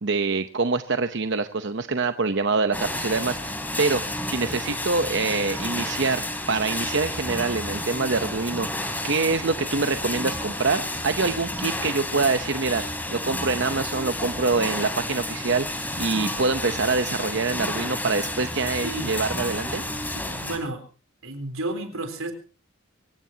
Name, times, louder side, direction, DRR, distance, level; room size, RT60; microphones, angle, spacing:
voice 1, 0.0-4.0 4.3-12.8 13.1-19.8, right 4 dB, 60° right, 9 dB, 0.8 m, -25 dB
sound 1, 2.7-20.6, left 1 dB, 10° left, 3.3 m, -31 dB
voice 2, 19.9-20.8 21.2-22.3, right 2 dB, 85° right, 8 dB, 3.7 m, -32 dB
24.5 x 16.5 x 2.8 m, 0.35 s
head